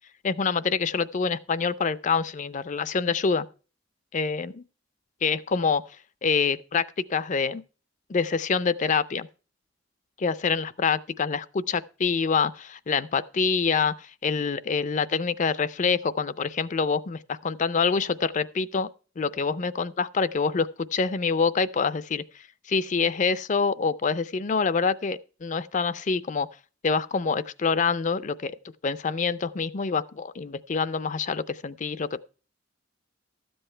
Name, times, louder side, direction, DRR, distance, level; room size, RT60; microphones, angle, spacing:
voice 1, 0.2-3.5 4.1-4.6 5.2-5.8 6.2-7.6 8.1-9.3 10.2-18.9 19.2-22.2 22.7-26.5 26.8-28.5 28.8-32.2, left 5 dB, 40° left, 0.5 m, -26 dB
13.0 x 7.8 x 4.4 m
head